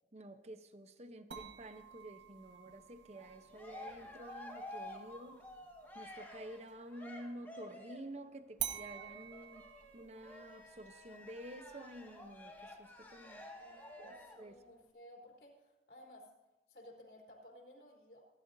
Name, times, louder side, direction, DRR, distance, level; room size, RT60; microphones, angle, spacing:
voice 1, 0.1-5.5 5.9-13.5 14.0-14.1 14.4-14.6, right 1 dB, 40° right, 9 dB, 0.9 m, -50 dB
sound 1, 1.3-6.9 8.6-13.6, right 10 dB, 90° right, 1.5 m, -49 dB
Cheering, 3.1-8.2 8.9-14.5, left 1 dB, 10° left, 1.9 m, -51 dB
voice 2, 13.6-16.3 16.7-18.3, left 1 dB, 60° left, -2 dB, 3.7 m, -57 dB
27.0 x 12.0 x 2.7 m, 1.1 s
head